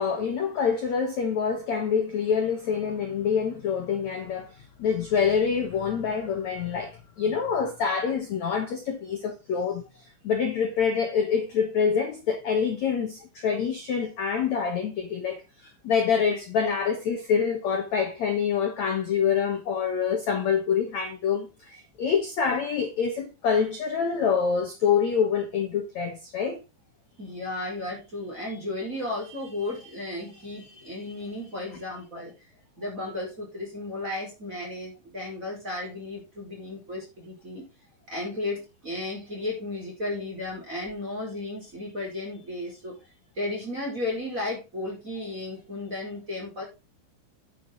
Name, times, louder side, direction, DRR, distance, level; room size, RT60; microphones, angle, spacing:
voice 1, 0.0-4.5 4.8-9.9 10.2-26.6, left 6 dB, 85° left, 1.5 m, -26 dB
voice 2, 27.2-32.3 32.8-37.6 38.1-42.9 43.3-46.6, left 2 dB, 15° right, 5.0 m, -34 dB
9.8 x 8.2 x 4.0 m
omnidirectional pair, 5.5 m